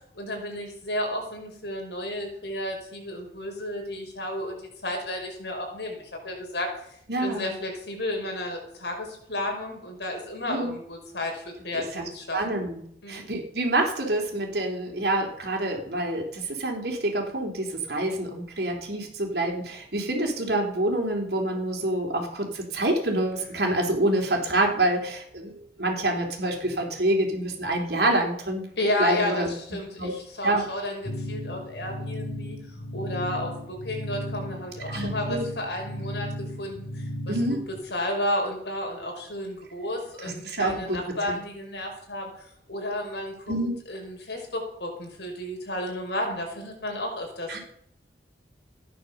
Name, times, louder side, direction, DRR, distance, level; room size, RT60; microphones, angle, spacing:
voice 1, 0.1-6.7 7.2-12.4 13.0-13.2 28.8-32.6 32.9-37.3 37.9-43.5 43.9-47.6, left 1 dB, 70° left, 2 dB, 5.1 m, -32 dB
voice 2, 7.1-7.5 10.5-10.7 11.7-12.0 12.3-12.8 13.1-28.6 29.0-29.5 30.0-30.1 30.4-30.7 34.9-35.5 37.3-37.6 40.2-41.0 41.3-41.4 43.5-43.8 47.5-47.6, right 1 dB, 60° right, 1 dB, 3.8 m, -27 dB
sound 1, 31.0-37.8, equal, 40° left, 3.4 m, -35 dB
15.0 x 10.0 x 7.1 m, 0.69 s
head